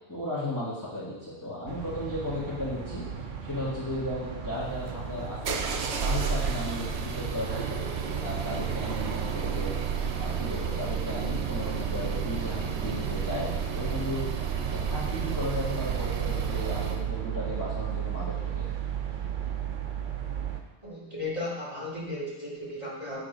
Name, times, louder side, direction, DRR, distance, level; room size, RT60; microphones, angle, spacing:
voice 1, 0.1-3.0 3.4-5.6 6.0-9.7 10.1-14.2 14.7-18.7, left 1 dB, 15° left, -9 dB, 1.7 m, -35 dB
sound 1, 1.7-20.6, right 8 dB, 50° right, 0.7 m, -36 dB
sound 2, 4.5-17.0, right 7 dB, 75° right, 1.0 m, -32 dB
voice 2, 20.8-23.3, left 2 dB, 25° right, -9 dB, 2.6 m, -35 dB
7.5 x 3.7 x 5.1 m, 1.2 s
omnidirectional pair, 1.2 m